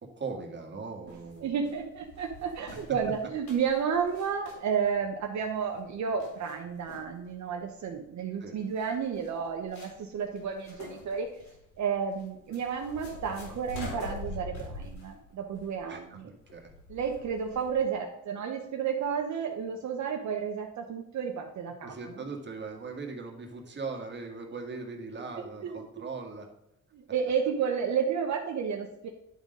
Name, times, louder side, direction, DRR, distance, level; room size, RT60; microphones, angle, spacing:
voice 1, 0.0-1.5 8.4-8.6 15.9-16.7 21.8-26.5, right 4 dB, 35° right, 2 dB, 1.8 m, -40 dB
sound 1, 1.1-17.8, left 2 dB, 75° left, 3.4 m, -45 dB
voice 2, 1.4-11.4 11.8-16.2 16.9-22.1 25.6-25.8 26.9-29.1, right 6 dB, 65° right, 2 dB, 1.0 m, -31 dB
10.5 x 3.8 x 5.3 m, 0.84 s
cardioid pair, 90°, 30 cm